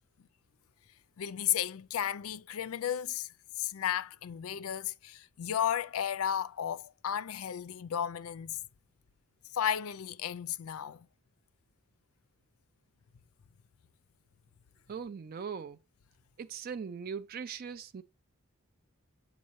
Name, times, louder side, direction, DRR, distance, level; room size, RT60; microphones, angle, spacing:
voice 1, 1.2-3.3 3.6-8.6 9.5-11.1, left 9 dB, 75° left, 0.4 m, -33 dB
voice 2, 14.9-15.8 16.4-18.0, right 6 dB, 40° right, 0.3 m, -40 dB
7.4 x 5.0 x 3.0 m
head